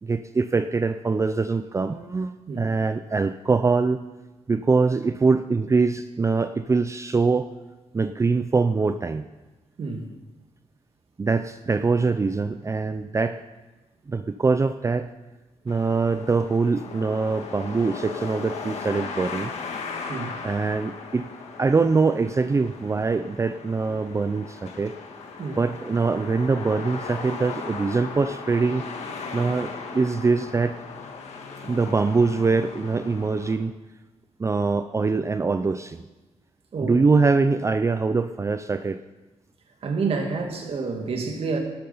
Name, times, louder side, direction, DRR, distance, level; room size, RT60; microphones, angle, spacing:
voice 1, 0.0-4.0 4.5-7.5 7.9-9.3 11.2-13.4 14.1-15.1 15.7-19.5 20.4-21.3 21.6-25.0 25.6-28.8 29.3-30.8 31.6-33.7 34.4-36.0 36.8-39.0, right 4 dB, 25° right, 10 dB, 0.5 m, -23 dB
sound 1, 15.7-33.6, left 5 dB, 80° left, 1.7 m, -37 dB
voice 2, 39.8-41.6, right 4 dB, 60° right, 3 dB, 2.4 m, -28 dB
12.5 x 12.0 x 5.6 m, 1.1 s
cardioid pair, 90°, 11 cm